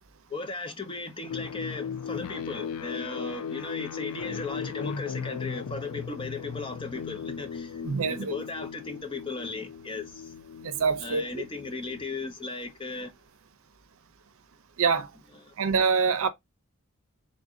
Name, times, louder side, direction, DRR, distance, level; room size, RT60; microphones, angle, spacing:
voice 1, 0.3-7.8 8.1-10.3 11.0-13.1 15.4-15.5, left 3 dB, 25° left, 0.6 m, -36 dB
sound 1, 1.3-12.2, left 6 dB, 85° left, 0.4 m, -37 dB
voice 2, 7.8-8.3 10.6-11.4 14.8-15.1 15.6-16.3, right 5 dB, 70° right, 0.6 m, -25 dB
3.8 x 2.6 x 3.6 m
head